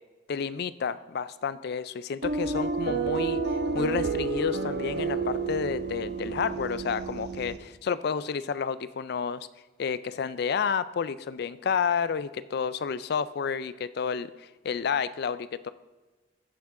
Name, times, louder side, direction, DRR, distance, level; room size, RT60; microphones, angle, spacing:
voice 1, 0.3-3.4 3.7-9.5 9.8-15.7, left 6 dB, 55° left, 15 dB, 0.4 m, -30 dB
sound 1, 2.2-7.6, right 4 dB, 55° right, 0.9 m, -30 dB
15.0 x 5.9 x 3.7 m, 1.2 s
head